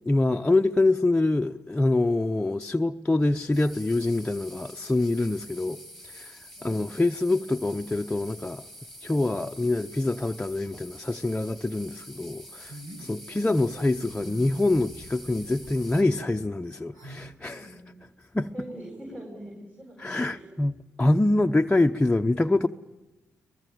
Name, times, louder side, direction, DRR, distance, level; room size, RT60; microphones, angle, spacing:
voice 1, 0.0-8.6 9.0-17.8 18.3-18.5 20.0-22.7, left 2 dB, 15° left, 0.8 m, -25 dB
sound 1, 3.5-16.0, equal, 5° right, 2.7 m, -46 dB
voice 2, 6.6-6.9 13.3-13.6 17.4-17.9 18.5-20.6, right 1 dB, 30° right, 8.0 m, -43 dB
sound 2, 12.7-13.1 14.1-14.7 15.6-16.0 16.9-17.3, right 1 dB, 85° right, 5.5 m, -44 dB
23.0 x 21.0 x 9.2 m
supercardioid pair, 50°, 6 cm